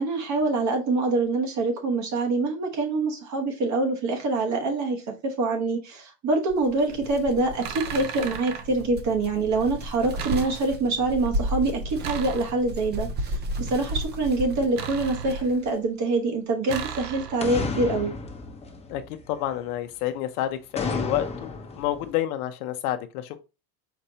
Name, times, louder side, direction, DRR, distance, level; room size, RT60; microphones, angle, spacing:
voice 1, 0.0-18.1, right 3 dB, 40° right, 1.1 m, -25 dB
sound 1, 6.5-15.8, equal, 25° right, 0.6 m, -34 dB
sound 2, 6.9-7.1 7.6-8.7 10.2-11.0 12.0-12.9 14.8-15.7 16.7-17.6, right 7 dB, 80° right, 1.0 m, -36 dB
sound 3, 15.4-15.5 17.4-19.6 20.8-22.1, left 3 dB, 15° left, 0.8 m, -32 dB
voice 2, 18.9-23.4, left 12 dB, 80° left, 0.7 m, -29 dB
4.5 x 4.2 x 2.8 m
supercardioid pair, 125°, 44 cm